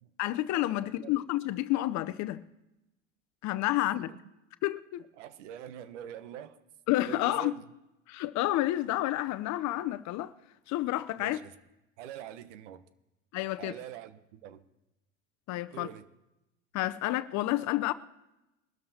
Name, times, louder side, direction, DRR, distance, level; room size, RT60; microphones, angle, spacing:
voice 1, 0.2-2.4 3.4-4.1 4.6-5.0 6.9-7.5 8.1-10.3 10.7-11.4 13.3-13.7 15.5-15.9 16.7-17.9, left 16 dB, 50° left, 0.7 m, -30 dB
voice 2, 0.8-1.1 4.1-4.2 5.2-6.6 7.0-7.7 11.2-11.5 12.0-12.8 13.6-14.6 15.7-16.1, right 10 dB, 70° right, 1.2 m, -44 dB
22.5 x 13.0 x 2.9 m
hypercardioid pair, 85°, 37 cm